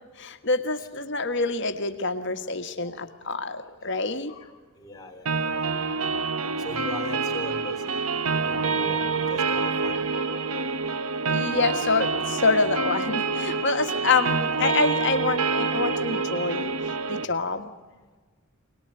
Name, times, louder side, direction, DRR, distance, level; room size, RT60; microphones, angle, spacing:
voice 1, 0.2-4.3 11.3-17.7, left 3 dB, 55° left, 7 dB, 1.6 m, -26 dB
voice 2, 4.3-5.8 6.6-8.0 8.3-10.1 17.6-17.8, left 1 dB, 15° left, -1 dB, 3.9 m, -40 dB
sound 1, 5.3-17.3, right 4 dB, 85° right, 0.9 m, -27 dB
25.5 x 19.0 x 9.0 m, 1.3 s
head